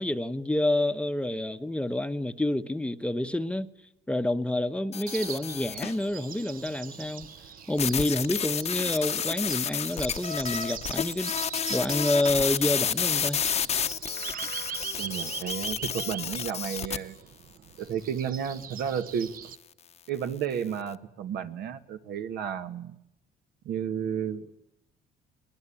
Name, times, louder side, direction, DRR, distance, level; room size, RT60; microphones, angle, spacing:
voice 1, 0.0-3.7 4.1-7.3 7.7-11.3 11.7-13.4, left 1 dB, 5° left, 0.9 m, -28 dB
sound 1, 4.9-6.0 7.8-17.0, left 8 dB, 40° left, 0.9 m, -30 dB
sound 2, 5.1-19.6, right 8 dB, 55° right, 1.0 m, -41 dB
voice 2, 15.0-17.2 17.8-19.3 20.1-23.0 23.6-24.5, right 8 dB, 75° right, 1.7 m, -32 dB
23.5 x 19.5 x 8.7 m
cardioid pair, 110°, 17 cm